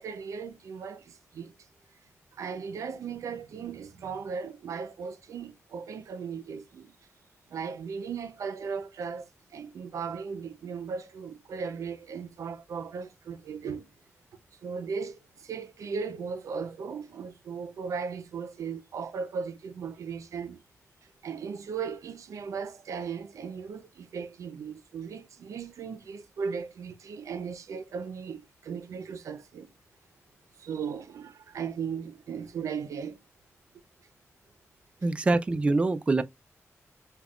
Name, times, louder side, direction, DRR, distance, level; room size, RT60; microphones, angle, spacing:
voice 1, 0.0-1.5 2.3-6.9 7.5-13.8 14.6-20.6 21.2-29.7 30.6-33.2, right 6 dB, 90° right, 0.6 m, -37 dB
voice 2, 35.0-36.2, right 3 dB, 20° right, 0.4 m, -24 dB
5.2 x 2.3 x 2.3 m
wide cardioid pair, 145°, 5 cm